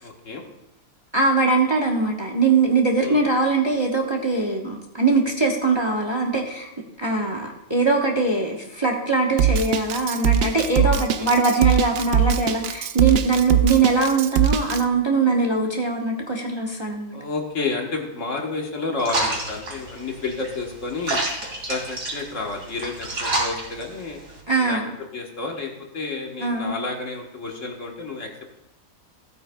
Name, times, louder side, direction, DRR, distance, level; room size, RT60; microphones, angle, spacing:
voice 1, 0.0-0.4 3.0-3.2 10.8-11.3 17.1-21.2 21.7-24.2 24.6-24.8 25.1-28.3, left 3 dB, 65° left, 1 dB, 1.7 m, -30 dB
voice 2, 1.1-6.7 7.0-17.2 24.5-24.9 26.4-26.8, right 3 dB, 20° right, -1 dB, 1.0 m, -21 dB
Drum kit, 9.4-14.8, right 8 dB, 60° right, 0.7 m, -21 dB
sound 1, 19.0-24.4, right 2 dB, 85° right, 3.0 m, -29 dB
15.5 x 8.7 x 2.3 m, 0.87 s
omnidirectional pair, 1.4 m